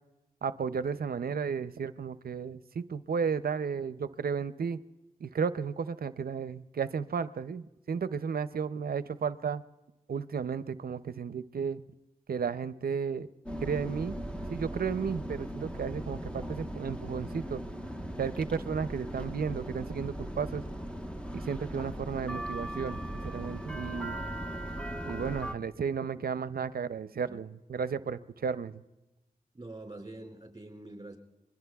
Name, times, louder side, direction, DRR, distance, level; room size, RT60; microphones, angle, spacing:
voice 1, 0.4-4.8 5.2-9.6 10.1-11.8 12.3-13.3 13.6-14.2 14.5-17.6 18.2-20.6 21.3-24.2 25.0-28.8, right 6 dB, 75° right, 14 dB, 0.5 m, -33 dB
sound 1, 13.5-25.5, equal, 5° left, 1.1 m, -38 dB
voice 2, 29.5-31.2, right 2 dB, 25° right, 3 dB, 5.2 m, -45 dB
26.5 x 22.0 x 2.3 m, 1.0 s
cardioid pair, 40°, 16 cm